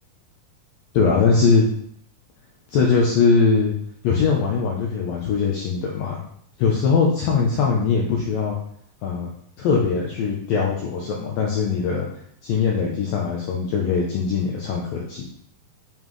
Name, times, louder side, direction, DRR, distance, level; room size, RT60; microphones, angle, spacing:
voice 1, 0.9-1.7 2.7-3.7 4.0-6.2 6.6-8.5 9.0-9.3 9.6-12.1 12.4-15.2, left 5 dB, 75° left, -2 dB, 2.0 m, -21 dB
7.2 x 5.4 x 3.2 m, 0.65 s
omnidirectional pair, 5.1 m